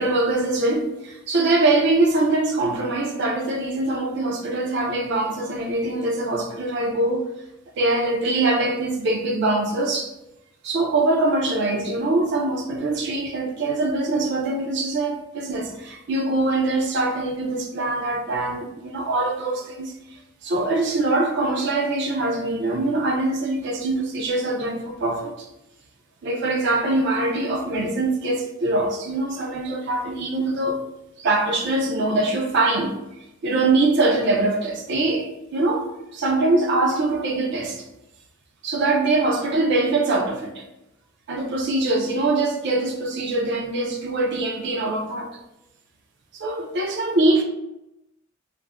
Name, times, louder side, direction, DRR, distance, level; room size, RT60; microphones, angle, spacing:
voice 1, 0.0-7.3 7.8-10.1 10.6-20.0 20.4-25.5 26.2-30.8 31.2-33.0 33.4-37.8 38.6-40.6 41.3-45.4 46.3-47.4, right 2 dB, 60° right, 0.4 m, -23 dB
2.4 x 2.0 x 3.3 m
head